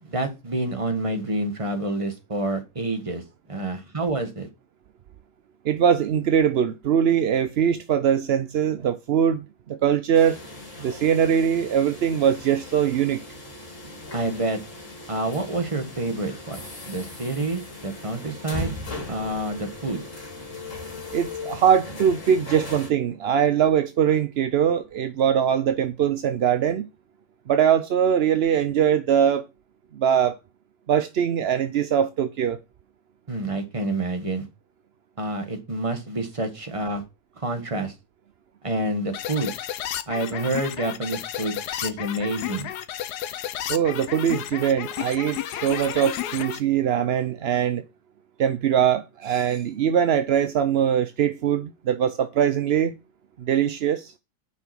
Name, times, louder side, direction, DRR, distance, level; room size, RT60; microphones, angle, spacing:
voice 1, 0.0-3.2 3.5-4.5 14.1-14.6 15.1-18.7 19.1-20.0 33.3-34.5 35.2-37.0 37.4-37.9 38.6-39.5 40.1-42.7, right 2 dB, 20° right, 1.6 m, -28 dB
voice 2, 5.6-10.4 10.8-13.2 21.1-26.8 27.5-29.4 29.9-30.4 30.9-32.6 43.7-47.8 48.4-52.9 53.4-54.1, right 8 dB, 65° right, 0.6 m, -22 dB
sound 1, 10.1-22.9, left 2 dB, 50° left, 2.8 m, -38 dB
sound 2, 39.1-46.6, left 11 dB, 80° left, 1.3 m, -32 dB
7.6 x 5.9 x 5.9 m
omnidirectional pair, 1.7 m